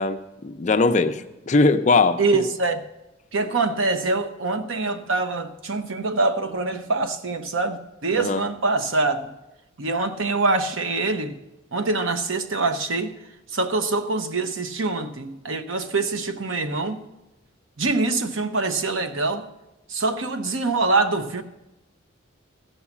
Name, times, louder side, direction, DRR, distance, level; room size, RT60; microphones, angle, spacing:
voice 1, 0.0-2.2 8.2-8.4, left 3 dB, 35° left, 8 dB, 0.5 m, -20 dB
voice 2, 2.2-2.8 3.3-9.3 9.8-11.3 11.7-13.1 13.5-17.0 17.8-19.5 19.9-21.4, right 3 dB, 70° right, 8 dB, 0.8 m, -24 dB
14.0 x 5.6 x 7.1 m, 0.97 s
head